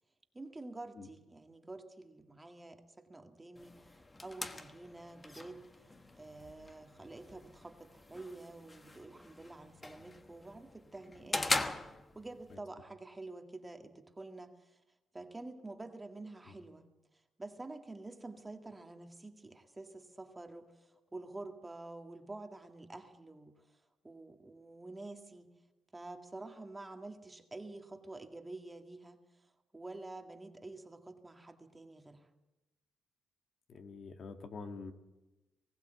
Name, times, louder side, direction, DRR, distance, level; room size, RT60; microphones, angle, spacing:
voice 1, 0.3-5.6 6.2-14.8 15.1-25.5 25.9-32.3, right 2 dB, 15° right, 5 dB, 2.0 m, -49 dB
sound 1, 3.6-12.6, left 2 dB, 20° left, 1.2 m, -41 dB
voice 2, 33.7-34.9, left 4 dB, 55° left, 6 dB, 1.8 m, -46 dB
20.5 x 15.5 x 8.1 m, 1.0 s
cardioid pair, 90°, 0 cm